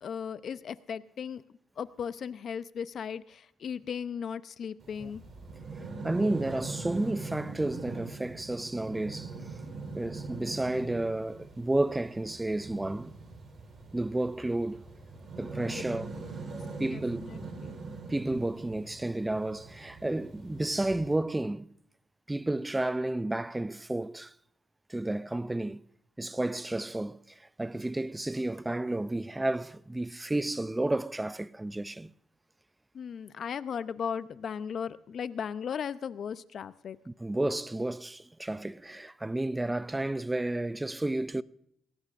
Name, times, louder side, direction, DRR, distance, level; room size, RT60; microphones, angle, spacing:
voice 1, 0.0-1.4 1.8-5.2 15.7-15.8 16.9-17.8 32.9-37.0, left 7 dB, 60° left, 0.7 m, -37 dB
sound 1, 4.8-21.2, right 3 dB, 50° right, 4.3 m, -42 dB
voice 2, 6.0-9.3 9.9-13.1 13.9-14.9 15.4-16.1 16.5-17.4 18.1-21.7 22.3-24.3 24.9-25.8 26.2-27.2 27.6-32.1 37.1-41.4, right 2 dB, 15° right, 0.4 m, -31 dB
20.5 x 18.5 x 2.6 m
cardioid pair, 90°, 0 cm